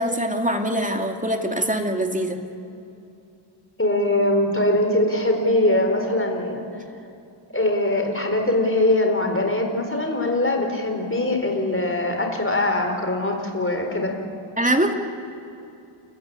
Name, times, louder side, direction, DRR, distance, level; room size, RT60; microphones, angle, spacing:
voice 1, 0.0-2.4 14.6-14.9, right 1 dB, 15° right, 4 dB, 2.5 m, -23 dB
voice 2, 3.8-6.6 7.5-14.2, left 1 dB, 25° left, 3 dB, 4.2 m, -22 dB
29.0 x 15.0 x 8.4 m, 2.7 s
wide cardioid pair, 55°, 49 cm